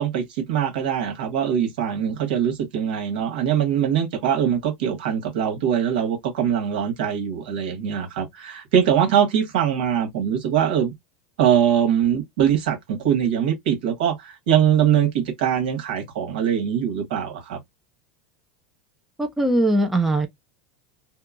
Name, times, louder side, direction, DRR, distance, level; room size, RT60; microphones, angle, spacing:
voice 1, 0.0-10.9 11.4-17.6, right 9 dB, 80° right, 1.3 m, -22 dB
voice 2, 19.2-20.3, right 1 dB, 5° right, 0.3 m, -20 dB
2.9 x 2.1 x 2.3 m
supercardioid pair, 160°, 5 cm